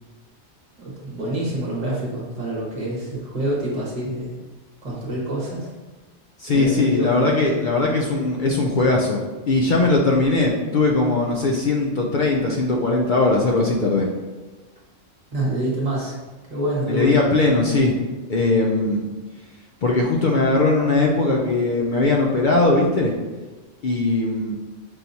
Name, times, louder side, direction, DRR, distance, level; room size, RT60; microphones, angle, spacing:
voice 1, 0.8-4.4 4.8-5.7 6.4-7.1 15.3-16.2 16.5-17.2, right 1 dB, 30° right, -6 dB, 1.3 m, -26 dB
voice 2, 6.4-14.1 16.8-18.0 18.3-19.1 19.8-23.1 23.8-24.5, left 2 dB, 65° left, -1 dB, 0.5 m, -20 dB
5.6 x 2.9 x 2.7 m, 1.2 s
omnidirectional pair, 1.3 m